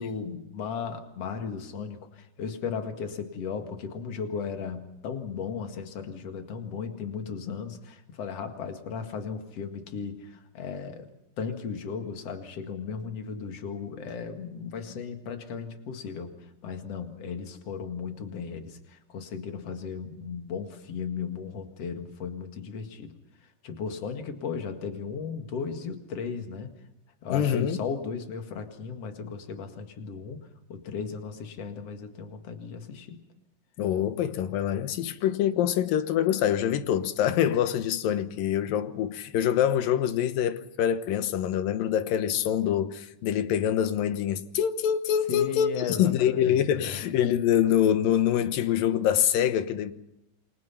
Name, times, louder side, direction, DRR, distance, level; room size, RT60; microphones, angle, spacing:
voice 1, 0.0-11.1 11.4-16.3 16.6-23.1 23.6-26.7 27.2-30.4 30.7-33.2 45.3-47.0, left 6 dB, 50° left, 2.8 m, -36 dB
voice 2, 27.3-27.8 33.8-49.9, left 10 dB, 85° left, 2.8 m, -25 dB
28.5 x 22.5 x 5.8 m
omnidirectional pair, 3.9 m